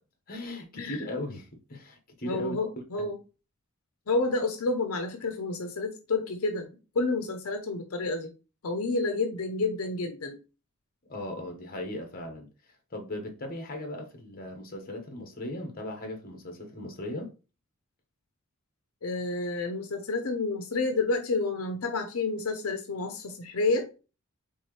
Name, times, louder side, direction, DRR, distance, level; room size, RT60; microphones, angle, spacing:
voice 1, 0.3-2.5 3.0-3.1 11.1-12.5 12.9-17.3, left 1 dB, 45° left, 1.2 m, -37 dB
voice 2, 2.2-3.2 4.1-8.3 8.6-10.4 19.0-23.9, left 3 dB, 85° left, 0.6 m, -29 dB
4.5 x 3.6 x 3.1 m
head